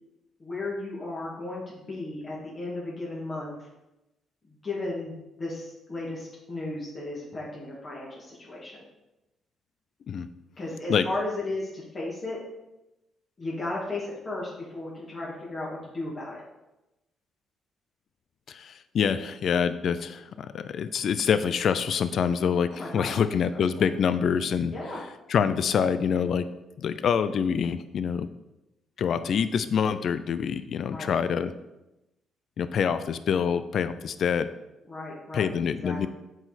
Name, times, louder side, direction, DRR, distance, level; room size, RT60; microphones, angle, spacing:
voice 1, 0.4-3.7 4.4-8.8 10.6-12.4 13.4-16.4 22.7-23.1 23.5-23.8 24.7-25.0 30.9-31.1 34.8-35.5 35.8-36.1, left 2 dB, 40° left, -6 dB, 2.2 m, -35 dB
voice 2, 18.5-24.7 25.3-26.4 26.8-28.3 29.0-31.5 32.6-34.5 35.3-36.1, left 7 dB, 60° left, 12 dB, 0.4 m, -26 dB
7.6 x 5.0 x 4.1 m, 0.96 s
cardioid pair, 90°, 0 cm